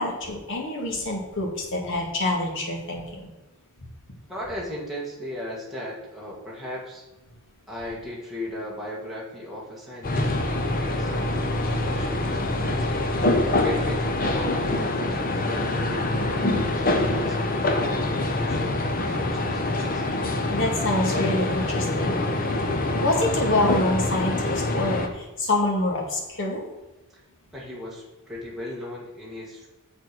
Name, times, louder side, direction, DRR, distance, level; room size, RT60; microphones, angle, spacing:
voice 1, 0.0-3.3 20.5-22.2 22.9-26.6, left 2 dB, 60° left, 0 dB, 2.2 m, -26 dB
voice 2, 4.3-7.1 7.7-12.9 13.4-20.0 27.1-27.2 27.5-29.7, left 1 dB, ahead, -6 dB, 2.0 m, -37 dB
sound 1, 10.0-25.1, left 2 dB, 40° left, 0.9 m, -25 dB
6.9 x 6.9 x 6.0 m, 1.0 s
head